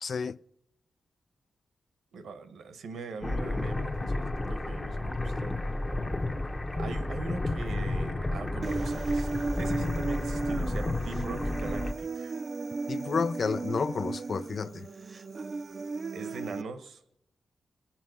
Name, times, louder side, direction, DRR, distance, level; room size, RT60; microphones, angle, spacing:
voice 1, 0.0-0.4 12.9-14.9, left 5 dB, 60° left, 0.4 m, -31 dB
voice 2, 2.1-5.5 6.7-9.3 9.5-12.4 16.1-17.0, right 4 dB, 90° right, 1.1 m, -42 dB
sound 1, 3.2-11.9, left 2 dB, 25° left, 1.0 m, -32 dB
Human voice, 8.6-16.6, right 4 dB, 45° right, 0.5 m, -35 dB
19.5 x 7.4 x 6.2 m
cardioid pair, 65°, 0 cm